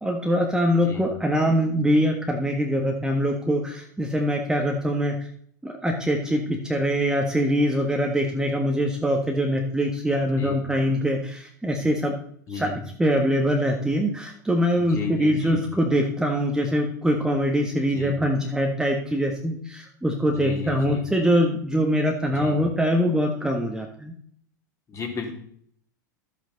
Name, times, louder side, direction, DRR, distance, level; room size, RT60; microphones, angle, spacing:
voice 1, 0.0-5.3 5.6-12.1 12.5-12.7 13.0-24.1, equal, 5° right, 1 dB, 1.4 m, -23 dB
voice 2, 12.5-12.8 14.8-15.6 17.9-18.2 20.3-21.1 22.3-22.7 24.9-25.3, left 5 dB, 30° left, 2 dB, 2.8 m, -33 dB
12.0 x 8.2 x 4.0 m, 0.62 s
hypercardioid pair, 90°, 10 cm